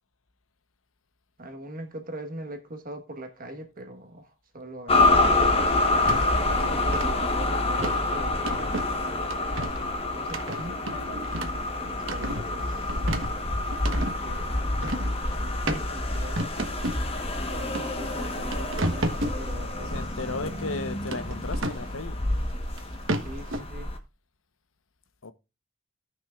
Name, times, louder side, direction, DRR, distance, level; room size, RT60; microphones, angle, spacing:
voice 1, 1.4-5.3 6.4-8.8 10.1-10.8 11.8-12.9 13.9-14.6 15.4-16.7 17.4-20.0 20.4-20.7 23.2-23.9, right 1 dB, 45° right, 1.3 m, -41 dB
sound 1, 4.9-24.0, left 2 dB, 30° left, 1.2 m, -27 dB
sound 2, 6.1-6.3 6.6-7.1 7.8-8.0 8.5-8.9 9.3-9.8 10.3-11.6 12.0-12.5 12.9-14.1 14.8-15.1 15.7-15.8 16.4-17.0 17.7-17.8 18.2-19.4 21.1-21.9 22.8-22.9 23.1-23.6, right 1 dB, 70° right, 1.3 m, -31 dB
voice 2, 19.8-22.2 25.2-25.3, left 3 dB, 85° left, 1.0 m, -35 dB
16.5 x 6.1 x 2.4 m
head